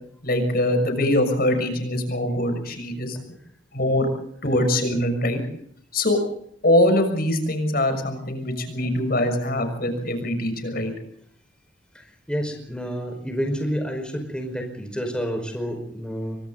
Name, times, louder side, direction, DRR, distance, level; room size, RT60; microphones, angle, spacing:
voice 1, 0.2-3.2 3.7-4.1 4.4-5.4 5.9-6.2 6.6-10.9, left 1 dB, 55° left, 7 dB, 6.3 m, -23 dB
voice 2, 11.9-16.4, equal, 5° left, 4 dB, 5.2 m, -29 dB
29.5 x 25.0 x 4.1 m, 0.64 s
head